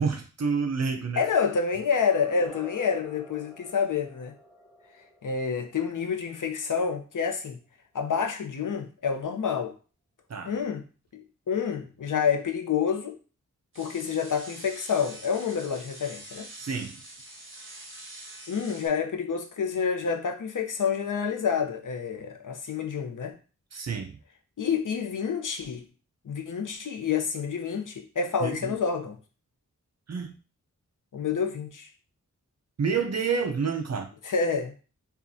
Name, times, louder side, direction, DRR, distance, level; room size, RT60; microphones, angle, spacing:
voice 1, 0.0-1.2 10.3-10.5 16.6-17.0 23.7-24.2 28.4-28.8 30.1-30.4 32.8-34.1, right 5 dB, 55° right, 0.6 m, -29 dB
voice 2, 1.1-4.3 5.2-7.6 7.9-9.7 10.5-10.8 11.1-13.1 13.8-16.5 18.5-23.3 24.6-25.8 26.2-29.2 31.1-31.9 34.2-34.8, left 6 dB, 80° left, 0.7 m, -28 dB
sound 1, 1.8-6.7, left 1 dB, 5° left, 1.3 m, -49 dB
sound 2, 13.7-18.9, right 1 dB, 40° right, 1.2 m, -45 dB
5.6 x 2.4 x 2.6 m
wide cardioid pair, 115°, 31 cm